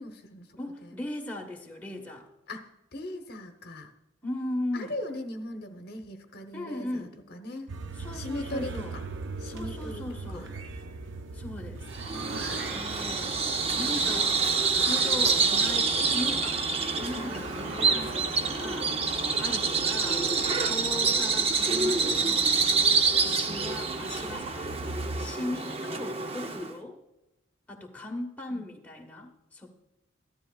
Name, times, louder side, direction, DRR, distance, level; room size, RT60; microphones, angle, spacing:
voice 1, 0.0-1.0 2.5-3.9 4.7-7.7 8.1-9.0 9.4-10.1 10.3-10.5 11.5-11.6 12.1-12.6 13.8-14.2 17.1-17.5 23.2-23.7 28.5-28.7, left 1 dB, 55° left, 5 dB, 0.9 m, -40 dB
voice 2, 0.6-2.3 4.2-4.9 6.5-7.1 8.0-9.0 9.4-10.5 11.3-11.8 12.7-13.4 13.8-14.4 14.8-16.6 16.9-19.0 19.4-20.3 20.6-22.5 23.2-24.8 25.2-27.0 27.7-29.7, left 1 dB, 10° left, 0 dB, 1.2 m, -38 dB
sound 1, 7.7-25.3, right 3 dB, 70° right, 0.7 m, -41 dB
Bird vocalization bird call bird song, 11.9-26.7, right 4 dB, 30° right, 0.6 m, -27 dB
14.0 x 12.0 x 2.3 m, 0.94 s
head